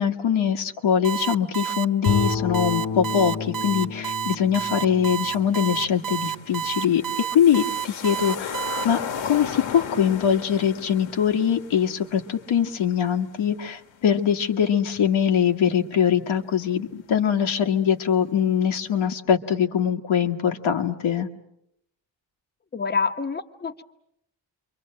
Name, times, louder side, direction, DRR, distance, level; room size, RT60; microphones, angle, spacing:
voice 1, 0.0-9.0 9.2-21.3, left 8 dB, 90° left, 5 dB, 1.9 m, -22 dB
Alarm, 1.0-8.8, right 8 dB, 45° right, 1.0 m, -29 dB
Bowed string instrument, 2.1-6.3, left 6 dB, 50° left, 1.0 m, -30 dB
sound 1, 4.5-4.6 4.9-14.7 15.0-15.1, left 8 dB, 70° left, 1.6 m, -37 dB
voice 2, 22.7-23.8, left 5 dB, 20° left, 7 dB, 1.0 m, -27 dB
29.0 x 24.0 x 7.7 m, 0.80 s
wide cardioid pair, 165°, 46 cm